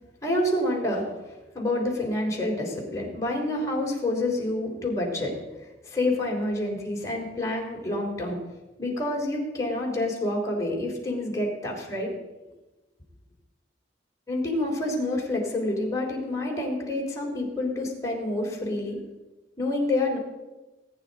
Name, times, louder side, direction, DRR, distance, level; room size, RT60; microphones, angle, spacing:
voice 1, 0.2-1.1 1.5-5.3 5.8-8.4 8.8-12.2 14.3-19.0 19.6-20.2, left 1 dB, 20° left, -2 dB, 3.4 m, -28 dB
19.5 x 9.6 x 4.1 m, 1.1 s
head